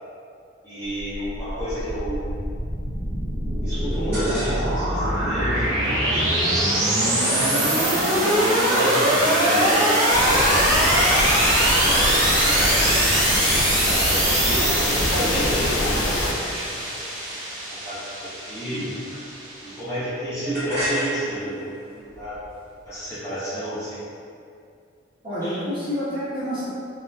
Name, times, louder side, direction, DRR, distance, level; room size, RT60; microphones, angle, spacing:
voice 1, 0.6-2.2 3.6-6.7 7.2-11.1 11.6-13.0 13.6-16.8 17.8-18.9 19.6-22.4 22.8-24.0 25.4-25.6, equal, 15° left, -12 dB, 0.5 m, -30 dB
sound 1, 1.2-19.7, right 1 dB, 75° right, 0.7 m, -22 dB
sound 2, 3.9-4.9 5.2-8.7 9.2-9.7 9.9-10.4 10.7-15.7 16.4-19.6 19.9-23.1, equal, 10° right, 1.0 m, -37 dB
sound 3, 10.1-16.3, left 2 dB, 65° left, 0.3 m, -25 dB
voice 2, 25.2-26.6, equal, 25° right, -11 dB, 0.6 m, -28 dB
2.7 x 2.2 x 2.2 m, 2.4 s
head